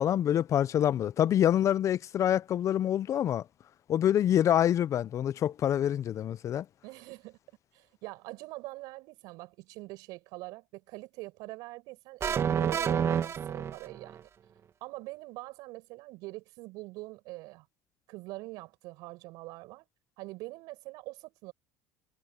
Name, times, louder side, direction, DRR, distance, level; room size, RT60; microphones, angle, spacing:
voice 1, 0.0-3.4 3.9-6.6, left 10 dB, 45° left, 0.9 m, -26 dB
voice 2, 6.8-7.4 7.7-14.3 14.8-17.7 18.1-19.9 20.2-21.5, right 22 dB, 70° right, 5.8 m, -43 dB
sound 1, 12.2-14.2, right 8 dB, 40° right, 1.8 m, -29 dB
hypercardioid pair, 80°, 7 cm